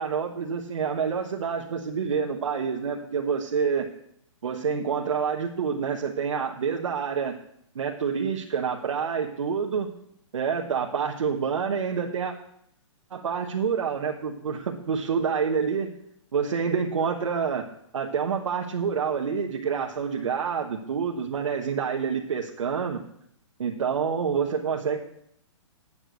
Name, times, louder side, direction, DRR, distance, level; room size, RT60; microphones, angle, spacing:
voice 1, 0.0-3.9 4.4-7.4 7.7-9.9 10.3-12.3 13.1-15.9 16.3-17.7 17.9-23.0 23.6-25.0, right 6 dB, 80° right, 0 dB, 1.2 m, -27 dB
8.6 x 6.4 x 8.2 m, 0.73 s
hypercardioid pair, 165°, 16 cm